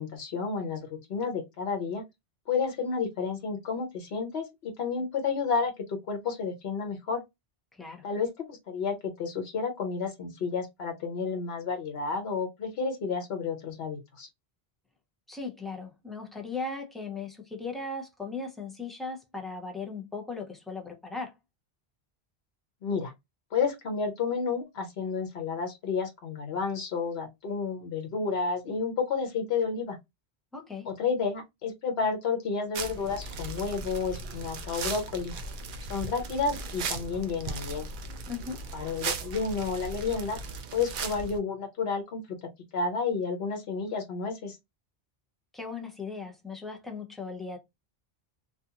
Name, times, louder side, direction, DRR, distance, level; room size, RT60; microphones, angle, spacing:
voice 1, 0.0-2.0 2.5-7.2 8.0-14.3 22.8-23.1 23.5-30.0 30.9-35.3 35.9-37.9 38.7-40.4 40.7-42.2 42.7-44.6, left 5 dB, 85° left, 1.1 m, -31 dB
voice 2, 7.7-8.0 15.3-21.3 30.5-30.9 38.3-38.7 45.5-47.6, left 4 dB, ahead, 0.4 m, -38 dB
sound 1, 32.7-41.4, right 4 dB, 60° right, 0.6 m, -37 dB
2.5 x 2.4 x 2.7 m
omnidirectional pair, 1.0 m